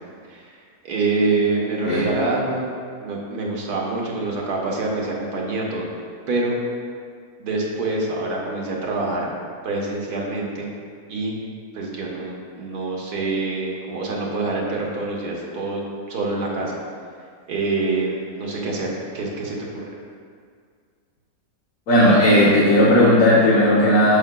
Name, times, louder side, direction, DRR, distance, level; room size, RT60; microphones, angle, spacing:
voice 1, 0.8-2.7 3.0-5.9 6.3-6.6 7.4-9.3 9.6-10.7 11.1-11.3 11.7-15.8 16.1-16.8 17.5-19.6 19.9-20.0, right 3 dB, 90° right, -2 dB, 1.7 m, -25 dB
voice 2, 21.9-24.2, left 1 dB, 65° left, -6 dB, 1.4 m, -15 dB
9.5 x 7.5 x 2.2 m, 2.1 s
omnidirectional pair, 1.6 m